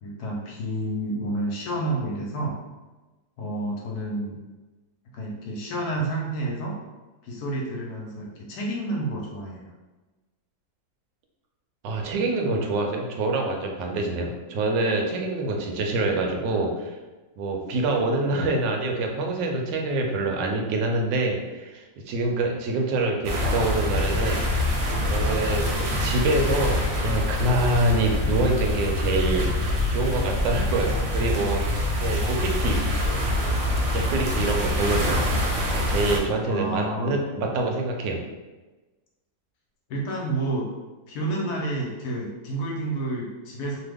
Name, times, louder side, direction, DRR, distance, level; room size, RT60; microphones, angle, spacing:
voice 1, 0.0-2.6 3.4-4.4 5.1-6.8 7.2-9.7 36.5-37.2 39.9-40.7 41.1-43.8, right 2 dB, 70° left, -2 dB, 1.0 m, -29 dB
voice 2, 11.8-16.9 17.4-24.4 25.1-32.8 33.9-35.2 35.7-38.2, right 2 dB, 85° right, 2 dB, 1.2 m, -26 dB
sound 1, 23.2-36.2, left 1 dB, 65° right, 0.9 m, -25 dB
3.0 x 2.2 x 3.3 m, 1.2 s
omnidirectional pair, 1.9 m